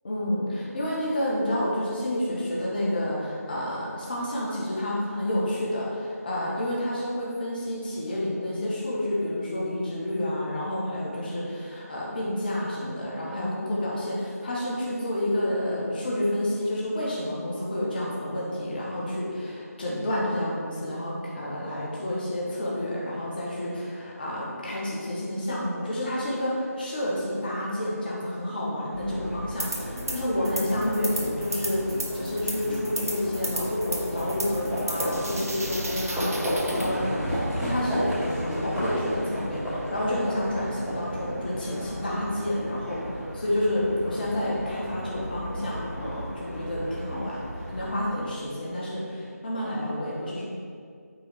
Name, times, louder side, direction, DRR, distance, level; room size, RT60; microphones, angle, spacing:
voice 1, 0.0-31.8 32.1-43.0 43.3-47.4 47.7-50.4, left 1 dB, 30° left, -5 dB, 1.5 m, -29 dB
Livestock farm animals working animals, 28.9-47.9, equal, 5° right, 1.6 m, -33 dB
sound 1, 29.6-30.2 30.4-36.9, right 1 dB, 60° right, 1.2 m, -34 dB
8.7 x 3.8 x 5.1 m, 2.2 s
figure-of-eight pair, 160°, 9 cm